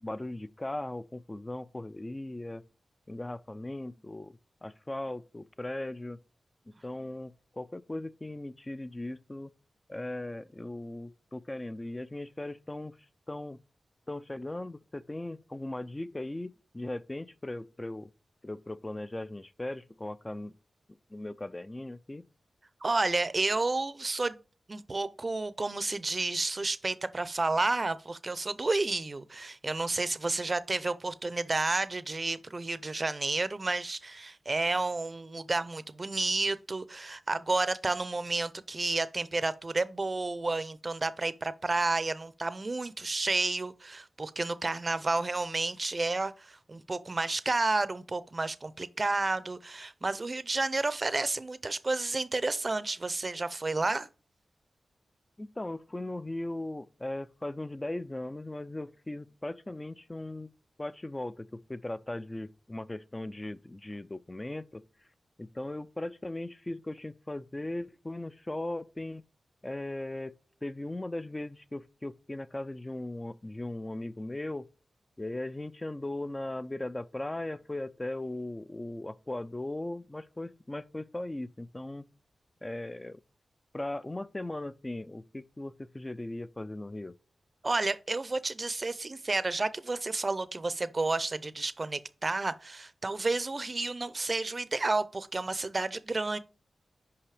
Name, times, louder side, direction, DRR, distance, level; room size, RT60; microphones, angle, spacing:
voice 1, 0.0-2.6 3.1-6.2 6.7-9.5 9.9-13.0 13.3-13.6 14.1-18.1 18.4-20.5 21.1-22.2 55.4-60.5 60.8-64.8 65.4-69.2 69.6-70.3 70.6-74.7 75.2-82.1 82.6-83.2 83.7-87.1, left 1 dB, 25° left, 0.5 m, -38 dB
voice 2, 22.8-24.4 24.7-54.1 87.6-96.4, right 3 dB, 40° right, 0.6 m, -31 dB
5.7 x 5.2 x 4.9 m
cardioid pair, 45°, 0 cm